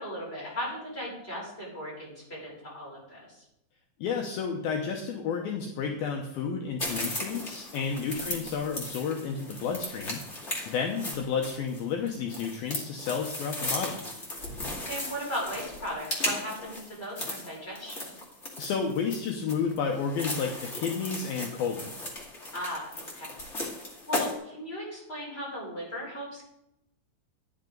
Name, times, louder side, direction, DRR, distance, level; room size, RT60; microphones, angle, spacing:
voice 1, 0.0-3.4 8.1-8.4 14.8-18.2 22.5-23.4 24.1-26.5, equal, 10° left, -6 dB, 5.2 m, -37 dB
voice 2, 4.0-10.2 10.7-14.0 18.6-21.9, left 6 dB, 75° left, 2 dB, 2.3 m, -31 dB
sound 1, 6.8-24.3, left 1 dB, 30° left, 1.2 m, -36 dB
13.5 x 10.5 x 3.9 m, 0.83 s
omnidirectional pair, 5.4 m